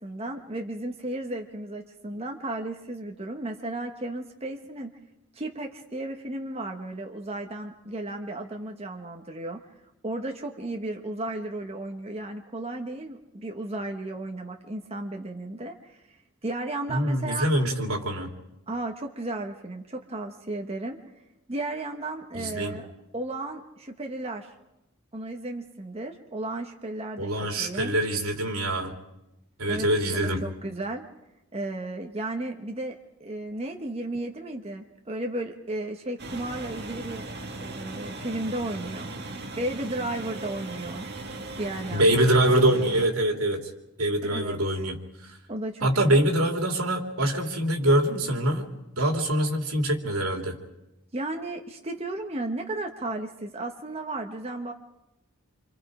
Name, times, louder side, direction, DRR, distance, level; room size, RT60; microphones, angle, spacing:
voice 1, 0.0-4.9 5.3-9.6 10.0-16.2 16.4-17.5 18.7-21.0 21.5-22.9 23.1-24.5 25.1-28.0 29.7-29.9 30.2-31.0 31.5-37.2 37.6-39.1 39.6-41.1 41.5-42.2 44.2-44.6 45.5-46.2 51.1-54.7, right 2 dB, 30° right, 2 dB, 1.3 m, -34 dB
voice 2, 16.9-18.3 22.3-22.8 27.2-28.9 29.6-30.4 41.9-43.7 44.0-45.0 45.2-45.3 45.8-48.7 49.0-50.6, right 1 dB, 85° right, 3 dB, 3.0 m, -24 dB
sound 1, 36.2-43.1, right 2 dB, 50° right, 2.0 m, -38 dB
27.0 x 26.5 x 5.0 m, 0.92 s
head